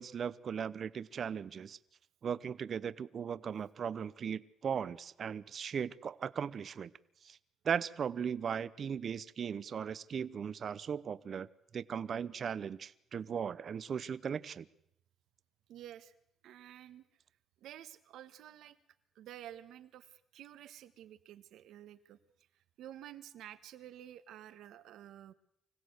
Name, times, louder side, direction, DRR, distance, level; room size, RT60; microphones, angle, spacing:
voice 1, 0.0-1.8 2.2-6.9 7.2-7.4 7.6-11.5 11.7-14.7, right 7 dB, 55° right, 16 dB, 0.8 m, -37 dB
voice 2, 15.7-16.1 16.4-17.0 17.6-18.8 19.1-22.2 22.8-25.3, right 11 dB, 85° right, 11 dB, 1.3 m, -51 dB
25.0 x 16.5 x 8.1 m, 0.78 s
cardioid pair, 90°, 0 cm